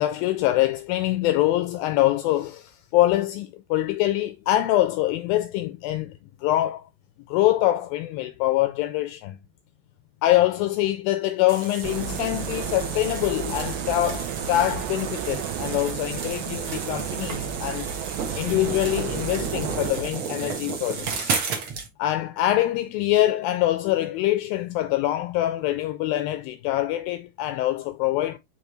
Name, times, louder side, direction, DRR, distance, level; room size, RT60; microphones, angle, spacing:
voice 1, 0.0-6.1 6.4-6.9 7.3-9.4 10.2-17.9 18.4-21.3 22.0-28.4, left 14 dB, 80° left, 2.1 m, -24 dB
sound 1, 11.5-21.9, right 5 dB, 65° right, 1.4 m, -33 dB
sound 2, 11.8-19.9, right 8 dB, 80° right, 2.6 m, -32 dB
8.5 x 3.7 x 3.0 m
omnidirectional pair, 4.6 m